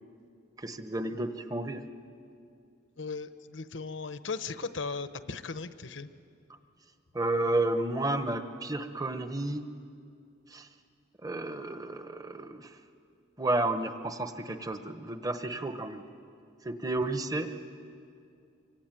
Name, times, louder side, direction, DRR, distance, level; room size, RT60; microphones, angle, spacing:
voice 1, 0.6-1.8 7.1-9.7 10.5-10.7 11.2-12.7 13.4-16.0 16.6-17.5, right 2 dB, 20° right, 9 dB, 1.0 m, -31 dB
voice 2, 3.0-6.1, left 4 dB, 75° left, 12 dB, 1.0 m, -37 dB
25.5 x 24.0 x 9.1 m, 2.4 s
head